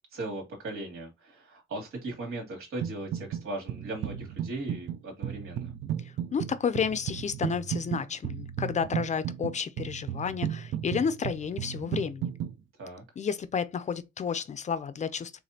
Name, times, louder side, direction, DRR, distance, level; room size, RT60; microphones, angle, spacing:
voice 1, 0.1-5.7 12.8-13.0, right 2 dB, 90° right, 2.6 m, -38 dB
sound 1, 2.8-3.4 3.7-12.5, right 10 dB, 70° right, 0.5 m, -34 dB
voice 2, 6.3-12.3 13.2-15.3, left 6 dB, 35° left, 0.4 m, -31 dB
4.9 x 3.5 x 2.8 m
cardioid pair, 150°, 21 cm